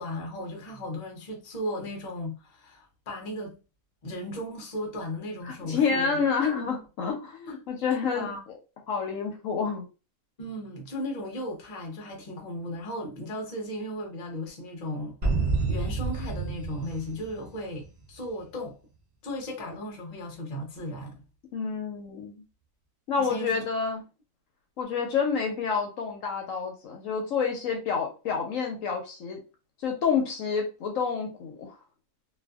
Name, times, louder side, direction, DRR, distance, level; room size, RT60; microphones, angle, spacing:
voice 1, 0.0-3.6 4.0-6.3 6.6-6.7 8.1-8.4 10.4-15.3 15.7-18.8 19.2-21.1 23.2-23.6, equal, 40° left, 0.6 m, -36 dB
voice 2, 5.5-8.3 8.9-9.8 21.5-22.4 23.1-24.0 24.8-29.4 29.8-31.8, left 6 dB, 70° left, 0.9 m, -28 dB
sound 1, 15.2-18.0, right 3 dB, 60° right, 0.4 m, -29 dB
2.6 x 2.5 x 2.3 m
omnidirectional pair, 1.6 m